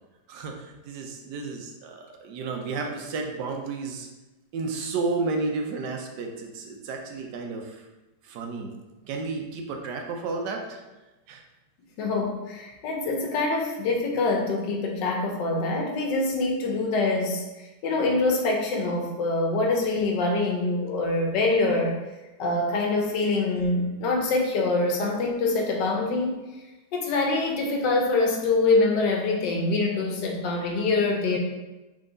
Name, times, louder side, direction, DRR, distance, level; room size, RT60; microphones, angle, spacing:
voice 1, 0.3-4.1 4.5-7.8 8.3-8.7 9.0-10.8 11.3-11.4, right 3 dB, 75° right, 2 dB, 1.2 m, -32 dB
voice 2, 12.0-17.4 17.8-22.0 22.4-26.4 26.9-31.4, left 3 dB, 80° left, 1 dB, 1.4 m, -25 dB
3.8 x 3.5 x 3.8 m, 1.1 s
omnidirectional pair, 1.9 m